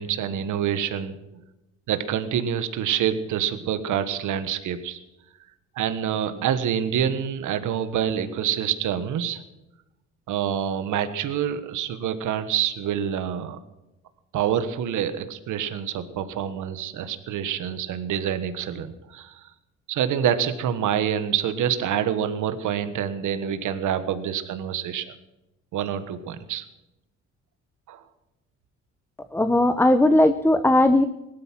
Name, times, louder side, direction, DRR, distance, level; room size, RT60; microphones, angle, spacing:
voice 1, 0.0-1.4 1.9-5.0 5.7-9.4 10.3-13.6 14.3-19.5 19.9-25.1 25.7-26.6 27.9-28.0, right 9 dB, 80° right, 11 dB, 1.5 m, -27 dB
voice 2, 29.3-31.0, left 1 dB, 5° left, 10 dB, 0.8 m, -18 dB
17.5 x 12.5 x 6.0 m, 0.95 s
cardioid pair, 90°, 30 cm